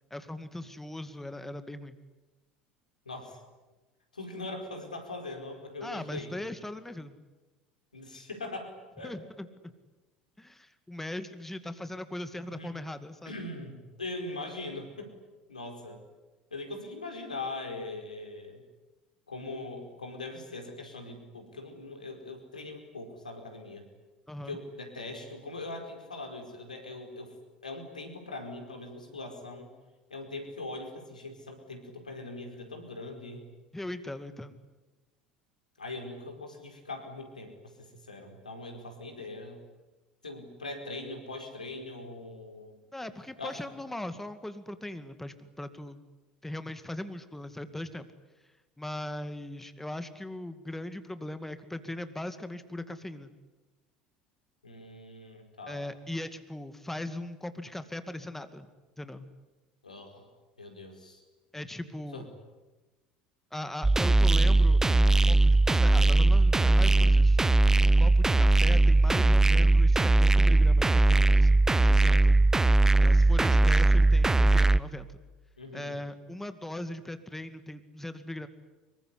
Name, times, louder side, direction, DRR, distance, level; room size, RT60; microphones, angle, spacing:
voice 1, 0.1-2.0 5.8-7.2 9.0-9.7 10.4-13.3 24.3-24.6 33.7-34.5 42.9-46.0 46.4-48.1 48.8-53.3 55.7-58.7 59.0-59.3 61.5-62.3 63.5-72.4 73.0-75.1 75.7-78.5, left 1 dB, 5° left, 10 dB, 2.3 m, -39 dB
voice 2, 3.0-3.4 4.1-6.3 7.9-9.1 12.5-12.7 13.2-15.2 15.5-16.0 16.5-18.6 19.3-23.8 24.4-27.4 27.6-29.7 30.1-33.4 35.8-39.6 40.2-42.7 43.4-43.6 54.6-55.8 59.8-60.3 60.6-61.2 62.1-62.3 75.6-76.0, left 2 dB, 90° left, 5 dB, 4.8 m, -41 dB
sound 1, 63.8-74.8, right 2 dB, 10° right, 0.9 m, -20 dB
26.0 x 23.0 x 9.9 m, 1.1 s
figure-of-eight pair, 70°, 4 cm